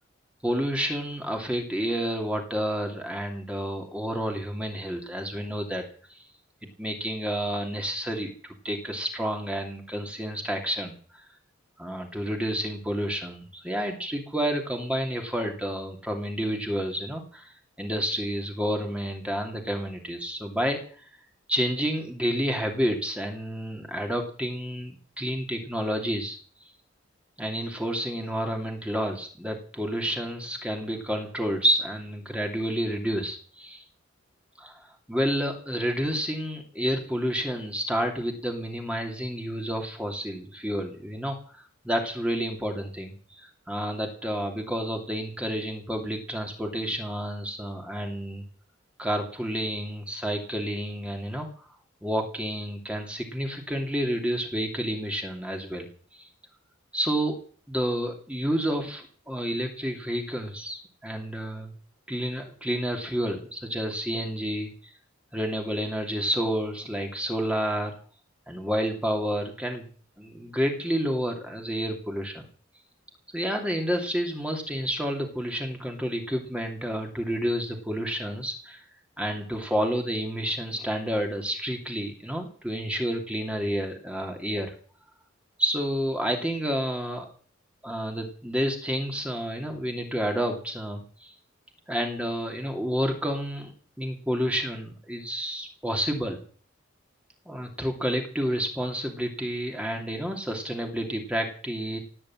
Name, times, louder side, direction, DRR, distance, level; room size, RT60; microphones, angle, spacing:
voice 1, 0.4-5.8 6.1-6.3 6.8-11.2 11.8-21.1 21.5-26.4 27.4-33.8 34.6-48.4 49.0-51.5 52.0-55.9 56.1-56.3 56.9-57.4 57.7-61.7 62.1-64.9 65.3-67.9 68.5-69.9 70.2-72.4 73.3-78.8 79.2-84.7 85.6-87.3 87.8-91.3 91.9-93.7 94.0-96.4 97.5-102.0, equal, 5° right, 3 dB, 2.7 m, -30 dB
17.5 x 8.6 x 9.0 m, 0.43 s
head